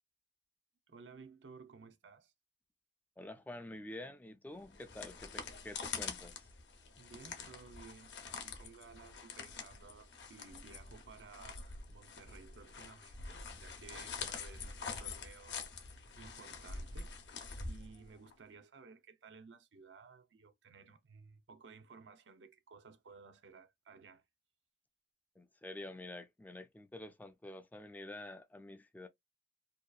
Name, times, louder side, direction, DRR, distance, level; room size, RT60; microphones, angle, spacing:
voice 1, 0.9-2.3 7.0-17.2 17.6-24.2, right 5 dB, 85° right, 0.6 m, -56 dB
voice 2, 3.2-6.5 25.4-29.1, left 1 dB, 10° left, 0.3 m, -48 dB
sound 1, 4.6-18.3, left 5 dB, 80° left, 0.7 m, -46 dB
2.7 x 2.3 x 2.3 m
head